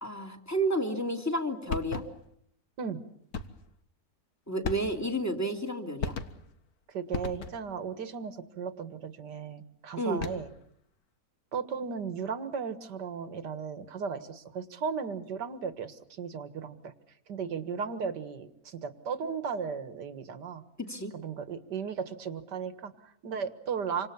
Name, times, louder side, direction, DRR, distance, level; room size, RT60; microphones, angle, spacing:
voice 1, 0.0-2.0 4.5-6.2 10.0-10.2 20.9-21.1, right 1 dB, 10° left, 4 dB, 2.9 m, -31 dB
sound 1, 1.7-2.3 3.3-3.7 4.6-5.2 6.0-6.6 7.1-7.8 10.0-10.6, left 5 dB, 55° left, 1.9 m, -37 dB
voice 2, 6.9-10.5 11.5-16.9 17.3-20.6 21.1-24.1, right 6 dB, 70° right, 10 dB, 2.2 m, -36 dB
28.0 x 25.5 x 7.1 m, 0.70 s
omnidirectional pair, 1.9 m